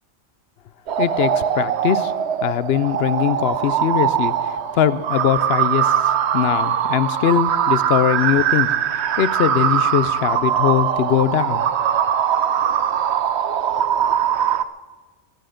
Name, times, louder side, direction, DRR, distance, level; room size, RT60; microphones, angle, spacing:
sound 1, 0.9-14.6, right 9 dB, 65° right, 0.9 m, -21 dB
voice 1, 1.0-2.1 2.4-11.7, left 10 dB, 60° left, 16 dB, 0.7 m, -21 dB
22.5 x 10.0 x 5.1 m, 1.3 s
omnidirectional pair, 1.3 m